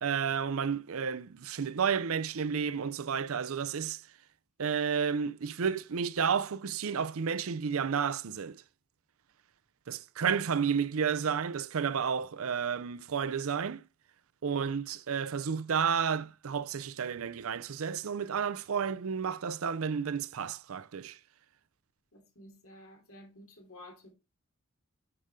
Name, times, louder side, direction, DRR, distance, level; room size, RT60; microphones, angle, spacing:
voice 1, 0.0-4.0 4.6-8.6 9.9-13.8 14.4-21.2, right 6 dB, 75° right, 0.5 m, -31 dB
voice 2, 22.1-24.1, left 1 dB, 85° left, 3.2 m, -52 dB
9.8 x 5.2 x 3.6 m
head